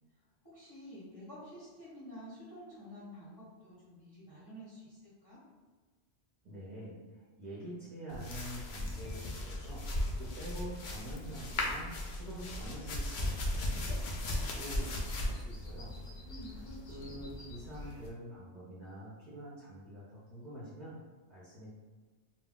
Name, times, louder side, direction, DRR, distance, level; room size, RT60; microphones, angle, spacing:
voice 1, 0.4-5.4 16.2-17.2, equal, 25° left, -9 dB, 0.8 m, -50 dB
voice 2, 6.4-9.8 10.2-13.9 14.5-15.9 16.9-20.9 21.3-21.7, right 1 dB, 45° right, -8 dB, 0.7 m, -46 dB
sound 1, 8.1-18.1, left 1 dB, 60° left, 0.5 m, -37 dB
2.3 x 2.2 x 3.7 m, 1.4 s
omnidirectional pair, 1.2 m